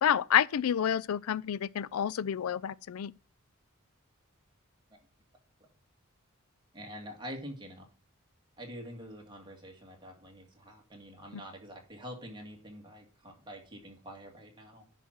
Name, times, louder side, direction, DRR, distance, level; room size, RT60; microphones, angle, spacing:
voice 1, 0.0-3.1 11.3-11.4, left 9 dB, 75° left, 0.4 m, -29 dB
voice 2, 6.7-7.9 8.6-14.9, equal, 20° right, 2.3 m, -46 dB
10.0 x 5.9 x 4.5 m
head